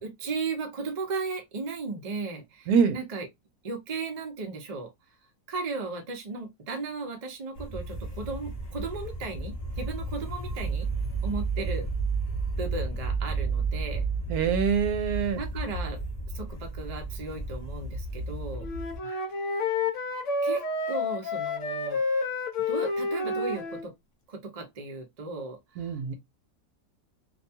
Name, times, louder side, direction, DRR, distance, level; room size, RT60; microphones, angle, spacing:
voice 1, 0.0-3.3 3.6-4.9 5.5-10.9 11.2-11.9 12.6-14.1 15.4-16.0 16.3-18.7 20.4-22.0 22.7-23.9 24.3-26.1, right 4 dB, 45° right, 0.5 m, -36 dB
sound 1, 7.5-19.0, right 3 dB, 40° left, 0.6 m, -32 dB
voice 2, 14.3-15.4 19.1-19.2 25.8-26.1, right 6 dB, 75° right, 1.0 m, -25 dB
Wind instrument woodwind instrument, 18.6-23.9, left 3 dB, 60° left, 0.9 m, -29 dB
2.6 x 2.2 x 2.7 m
omnidirectional pair, 1.6 m